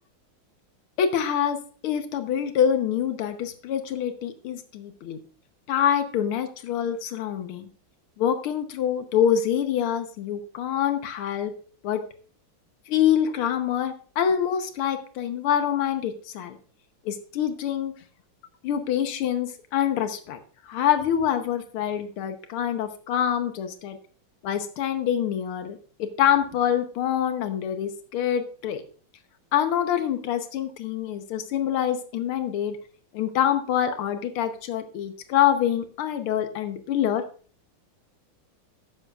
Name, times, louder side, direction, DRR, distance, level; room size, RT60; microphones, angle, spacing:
voice 1, 1.0-1.6 1.8-5.2 5.7-7.7 8.2-11.5 11.8-12.0 12.9-16.6 17.1-17.9 18.6-20.4 20.7-24.0 24.4-28.8 29.5-32.8 33.1-37.2, left 9 dB, 85° left, 7 dB, 1.8 m, -25 dB
13.0 x 10.0 x 2.4 m, 0.41 s
omnidirectional pair, 2.3 m